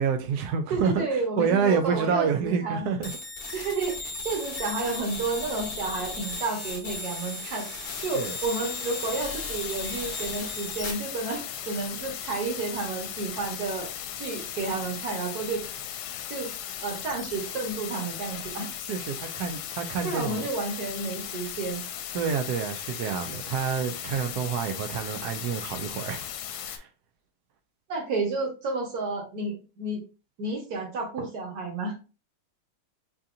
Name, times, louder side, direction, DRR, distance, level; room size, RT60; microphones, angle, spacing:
voice 1, 0.0-1.1 1.4-3.1 8.0-8.3 18.8-20.5 22.1-26.3 26.6-26.9, right 6 dB, 85° right, 0.8 m, -28 dB
voice 2, 0.7-2.9 3.5-7.7 8.0-13.9 14.2-15.6 16.3-16.5 16.8-18.7 20.0-21.8 27.9-30.0 30.4-32.0, right 3 dB, 50° right, 1.5 m, -31 dB
sound 1, 3.0-10.9, left 2 dB, 40° left, 0.7 m, -36 dB
sound 2, 7.8-26.8, left 9 dB, 80° left, 1.4 m, -37 dB
4.9 x 2.7 x 2.5 m
omnidirectional pair, 2.3 m